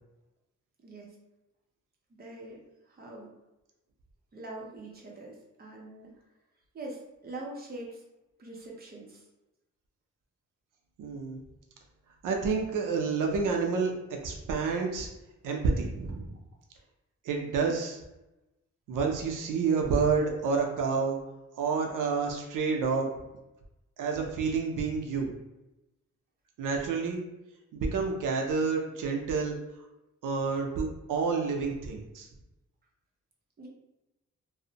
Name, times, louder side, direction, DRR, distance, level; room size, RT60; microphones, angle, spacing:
voice 1, 0.8-1.1 2.1-2.6 2.9-3.3 4.3-6.1 6.7-8.0 8.4-9.2 17.6-17.7 33.6-33.7, right 2 dB, 30° right, -2 dB, 0.6 m, -43 dB
voice 2, 11.0-11.4 12.2-13.9 14.2-15.1 15.4-16.3 17.2-18.0 18.9-21.2 21.6-23.1 24.0-25.3 26.6-27.2 27.7-29.6 30.2-32.3, right 4 dB, 85° right, 1 dB, 0.5 m, -29 dB
2.5 x 2.0 x 2.7 m, 0.95 s
wide cardioid pair, 125°, 31 cm